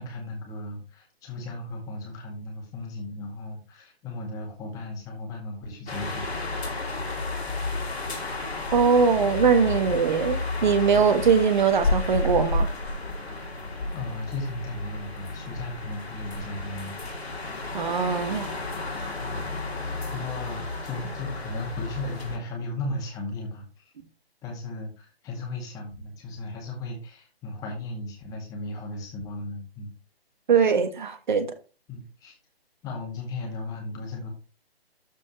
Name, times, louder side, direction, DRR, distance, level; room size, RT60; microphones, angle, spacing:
voice 1, 0.0-6.7 13.9-17.0 19.2-23.8 24.4-29.9 31.9-32.3 32.8-34.3, left 2 dB, 10° left, 1.8 m, -36 dB
sound 1, 5.9-22.4, left 2 dB, 75° left, 2.8 m, -32 dB
voice 2, 8.7-12.7 17.7-18.5 19.0-19.1 30.5-31.5, right 6 dB, 50° right, 1.3 m, -21 dB
13.0 x 4.4 x 3.0 m
figure-of-eight pair, 150°, 31 cm